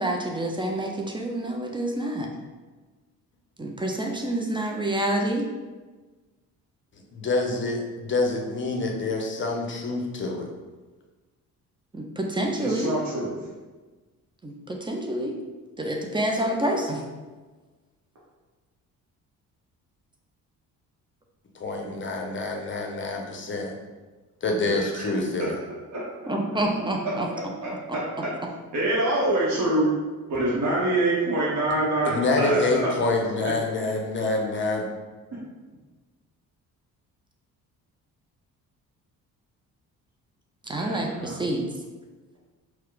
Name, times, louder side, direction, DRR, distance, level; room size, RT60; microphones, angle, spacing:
voice 1, 0.0-2.3 3.6-5.5 11.9-12.9 14.4-15.3 15.8-17.0 26.3-27.3 27.6-28.0 40.6-41.6, right 1 dB, 10° right, 1 dB, 0.5 m, -28 dB
voice 2, 7.1-10.5 21.5-23.7 24.4-25.5 32.1-34.8, left 2 dB, 25° left, 1 dB, 0.8 m, -26 dB
voice 3, 12.6-13.3 16.3-16.6 24.8-25.1 25.4-25.5 25.9-26.0 27.0-28.3 28.7-29.9 30.3-32.9 33.4-33.5 35.3-35.4 40.7-41.4, right 1 dB, 35° right, -6 dB, 1.1 m, -26 dB
4.3 x 2.3 x 3.9 m, 1.3 s
figure-of-eight pair, 40°, 46 cm